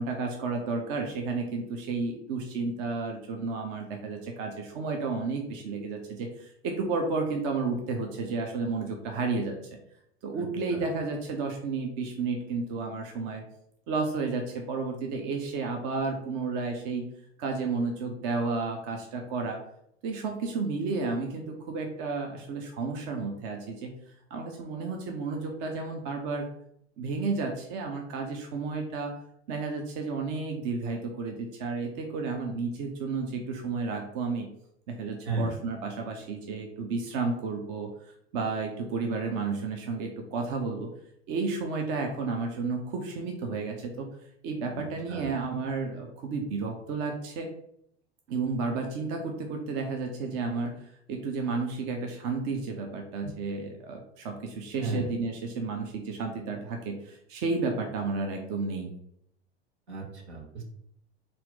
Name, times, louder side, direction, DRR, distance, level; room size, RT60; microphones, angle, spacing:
voice 1, 0.0-9.6 10.2-13.4 13.9-17.0 17.4-19.6 20.0-23.9 24.3-26.5 27.0-29.1 29.5-34.5 34.9-37.9 38.3-40.9 41.3-44.1 44.4-47.5 48.3-50.7 51.1-58.9, right 4 dB, 45° right, 3 dB, 0.7 m, -32 dB
voice 2, 10.3-10.9 35.2-35.6 44.7-45.4 54.8-55.1 59.9-60.6, right 3 dB, 75° right, 1 dB, 1.2 m, -35 dB
4.2 x 2.6 x 3.8 m, 0.74 s
figure-of-eight pair, 85°, 34 cm